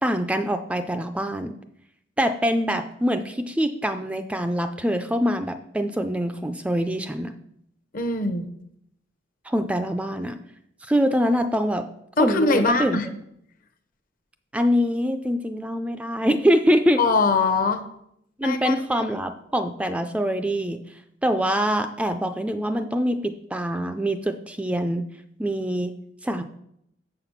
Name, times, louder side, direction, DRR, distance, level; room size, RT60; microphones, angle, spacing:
voice 1, 0.0-1.5 2.2-7.3 9.5-10.4 10.9-11.9 12.2-13.0 14.5-17.0 18.4-20.8 21.2-25.0 25.4-25.9 26.2-26.4, equal, 5° right, 8 dB, 0.4 m, -24 dB
voice 2, 7.9-8.5 12.2-13.1 17.0-17.8 18.4-19.0, left 3 dB, 50° left, 8 dB, 0.8 m, -22 dB
7.2 x 5.9 x 5.8 m, 0.75 s
head